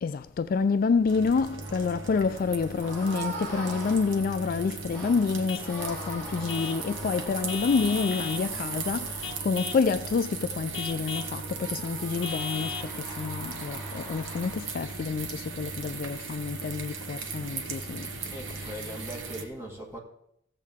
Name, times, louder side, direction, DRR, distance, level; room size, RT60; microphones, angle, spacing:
voice 1, 0.0-18.1 18.5-18.9, left 5 dB, 50° left, 0.3 m, -28 dB
sound 1, 1.1-19.4, right 4 dB, 90° right, 1.1 m, -38 dB
sound 2, 1.6-2.3 2.8-4.5 4.9-14.9, right 1 dB, 10° left, 4.6 m, -43 dB
Vehicle horn car horn honking / Truck, 5.5-5.7 6.5-6.9 7.5-8.5 9.2-9.9 10.7-11.4 12.2-12.9, left 6 dB, 80° left, 0.7 m, -36 dB
voice 2, 18.3-20.0, equal, 15° right, 1.9 m, -40 dB
15.5 x 7.4 x 3.6 m
head